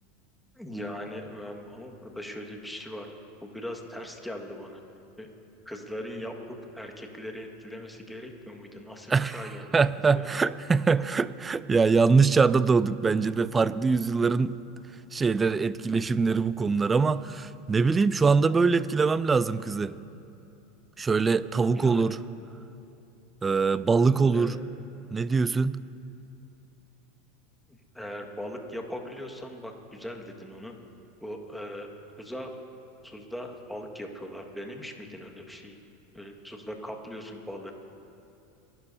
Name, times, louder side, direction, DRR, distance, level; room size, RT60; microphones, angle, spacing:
voice 1, 0.5-4.8 5.2-5.3 5.6-9.7 10.1-10.3 11.0-11.1 21.7-22.2 24.3-24.5 27.7-30.7 31.2-31.9 32.2-32.6 33.0-35.8 36.1-37.7, equal, 5° left, 2 dB, 1.7 m, -40 dB
voice 2, 9.7-14.5 15.1-20.0 21.0-22.2 23.4-24.6 25.1-25.8, right 4 dB, 20° right, 17 dB, 0.4 m, -23 dB
26.5 x 12.0 x 2.7 m, 2.8 s
hypercardioid pair, 90°, 0 cm